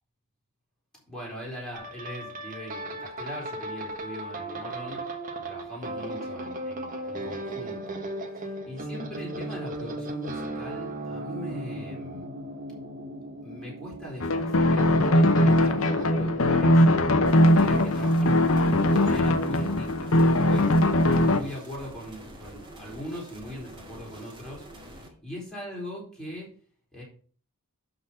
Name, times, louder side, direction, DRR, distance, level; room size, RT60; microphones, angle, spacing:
voice 1, 1.1-5.0 5.4-8.0 8.3-12.3 13.4-16.9 17.5-26.5 26.9-27.0, equal, 5° left, -5 dB, 4.2 m, -40 dB
sound 1, 1.7-20.2 21.0-21.3, right 1 dB, 35° right, 1.3 m, -37 dB
sound 2, 14.2-21.4, left 1 dB, 65° left, 0.9 m, -21 dB
sound 3, 17.2-25.1, right 1 dB, 20° right, 2.1 m, -46 dB
12.0 x 4.1 x 5.7 m, 0.43 s
head